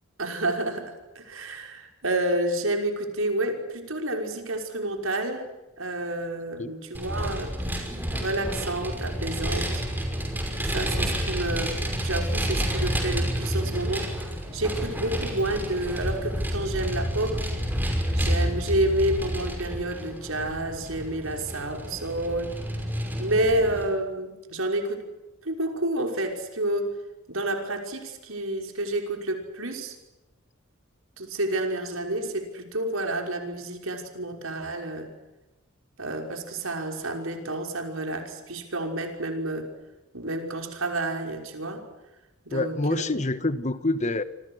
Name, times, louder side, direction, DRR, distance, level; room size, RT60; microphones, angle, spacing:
voice 1, 0.2-5.5 5.8-7.5 8.1-9.8 10.6-14.1 14.5-17.5 18.1-22.5 23.2-25.0 25.4-26.9 27.3-30.0 31.2-35.1 36.0-39.7 40.1-41.8 42.4-43.0, right 1 dB, 80° right, 5.7 m, -29 dB
Vehicle, 6.9-23.9, equal, 10° right, 5.8 m, -29 dB
voice 2, 42.5-44.2, left 2 dB, 35° left, 1.4 m, -26 dB
28.0 x 26.0 x 6.5 m
head